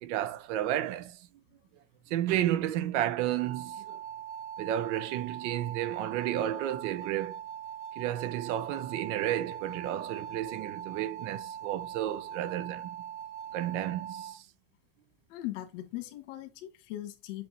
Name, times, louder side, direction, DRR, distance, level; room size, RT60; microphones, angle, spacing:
voice 1, 0.0-1.2 2.1-3.8 4.6-7.4 8.0-13.0 13.5-14.4, right 12 dB, 85° right, 0.9 m, -32 dB
sound 1, 3.1-14.4, right 9 dB, 25° right, 1.4 m, -41 dB
voice 2, 15.3-17.5, left 15 dB, 85° left, 1.8 m, -39 dB
7.8 x 2.8 x 4.4 m
cardioid pair, 170°, 35 cm